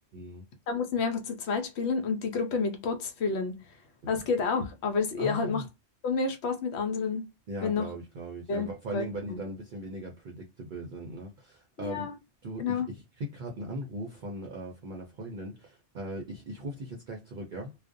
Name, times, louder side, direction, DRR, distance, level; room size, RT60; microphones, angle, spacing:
voice 1, 0.1-0.4 5.2-5.7 7.5-12.1 12.4-17.8, right 1 dB, 55° right, 0.6 m, -39 dB
voice 2, 0.7-3.6 4.1-5.6 6.0-7.2 7.6-7.9 8.5-9.0 9.3-9.4 11.8-12.1 12.6-12.9, left 5 dB, 75° left, 0.9 m, -29 dB
2.4 x 2.1 x 2.5 m
omnidirectional pair, 1.2 m